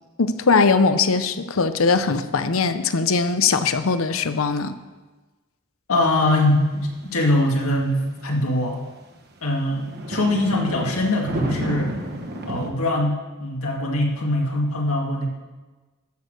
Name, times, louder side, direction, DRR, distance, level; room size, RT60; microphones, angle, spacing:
voice 1, 0.2-4.8, left 4 dB, 70° left, 11 dB, 0.7 m, -20 dB
voice 2, 5.9-8.8 9.4-11.9 12.5-15.3, left 1 dB, 90° left, 0 dB, 2.2 m, -22 dB
sound 1, 6.2-8.5 9.1-9.2 9.8-12.7, right 1 dB, 50° right, 1.4 m, -31 dB
13.5 x 6.5 x 6.5 m, 1.2 s
head